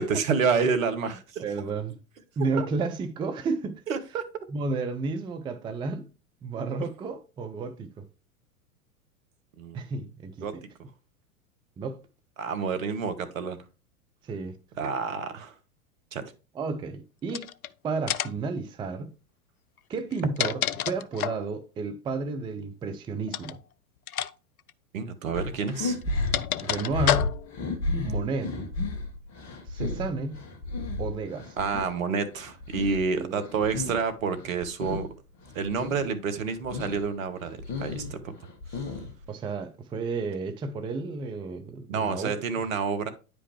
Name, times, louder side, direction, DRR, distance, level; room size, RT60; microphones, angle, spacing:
voice 1, 0.0-1.4 2.6-2.7 3.9-4.2 9.6-9.8 10.4-10.5 12.4-13.6 14.8-15.5 16.1-16.3 24.9-26.0 31.6-35.1 35.5-38.3 41.9-43.1, right 5 dB, 65° right, 1.4 m, -29 dB
voice 2, 1.4-2.0 2.4-3.8 4.5-6.1 6.4-8.1 9.7-10.6 11.8-12.0 14.2-14.6 16.5-17.5 17.8-19.1 19.9-23.6 26.6-27.3 28.0-28.5 29.7-30.4 31.0-31.6 33.1-33.4 39.3-42.3, right 4 dB, 10° right, 0.5 m, -32 dB
sound 1, 17.3-17.7 18.1-18.5 20.0-21.5 23.3-23.6 24.1-24.3 24.6-24.7 25.7-27.6, left 11 dB, 75° left, 0.6 m, -29 dB
sound 2, 25.3-31.9 32.3-34.1 34.3-35.1 35.4-36.0 36.4-37.0 37.4-39.2, left 2 dB, 35° left, 1.9 m, -33 dB
9.8 x 5.2 x 3.1 m
figure-of-eight pair, 95°, 43 cm